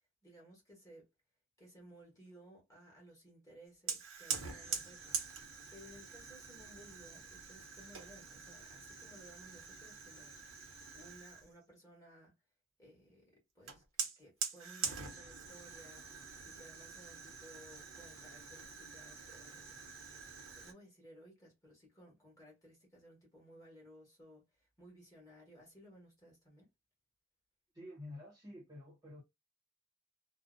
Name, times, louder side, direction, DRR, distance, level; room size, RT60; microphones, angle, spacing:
voice 1, 0.2-1.1 1.6-12.3 12.8-13.8 14.2-19.7 20.5-26.7, equal, 15° left, 1.2 m, -59 dB
Fire, 3.9-11.5 13.7-20.7, right 6 dB, 85° right, 0.7 m, -44 dB
voice 2, 27.7-29.2, left 1 dB, 20° right, 0.8 m, -49 dB
2.6 x 2.0 x 2.4 m
head